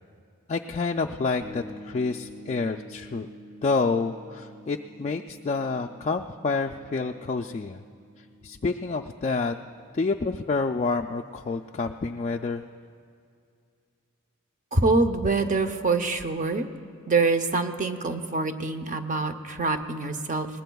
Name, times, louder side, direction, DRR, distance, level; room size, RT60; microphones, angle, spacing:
voice 1, 0.5-3.3 3.6-7.8 8.2-9.5 9.9-12.6, left 4 dB, 30° left, 3 dB, 0.3 m, -28 dB
sound 1, 1.4-11.0, equal, 75° right, 2.8 m, -48 dB
voice 2, 14.7-16.7 17.1-20.5, right 3 dB, 35° right, 8 dB, 0.7 m, -25 dB
22.0 x 19.0 x 2.3 m, 2.4 s
head